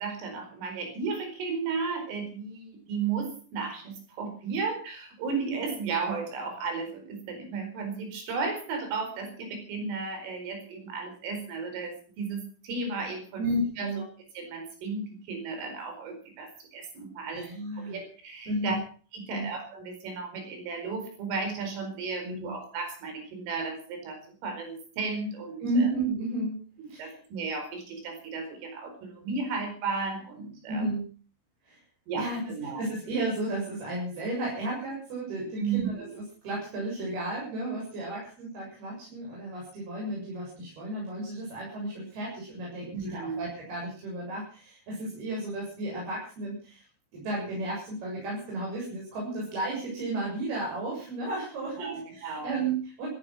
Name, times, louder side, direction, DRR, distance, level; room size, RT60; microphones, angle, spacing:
voice 1, 0.0-13.4 13.8-13.9 14.4-17.5 17.8-18.8 19.1-25.9 27.0-30.9 32.1-32.9 35.6-36.2 42.9-43.4 51.8-52.5, right 4 dB, 80° right, 5 dB, 7.1 m, -34 dB
voice 2, 13.4-14.0 17.3-18.0 18.5-18.8 19.3-19.5 22.2-22.6 25.6-27.1 30.7-31.1 31.6-31.8 32.2-32.4 32.8-46.8 47.1-53.1, right 2 dB, 50° right, -4 dB, 9.1 m, -33 dB
16.5 x 14.5 x 6.2 m, 0.40 s
omnidirectional pair, 5.7 m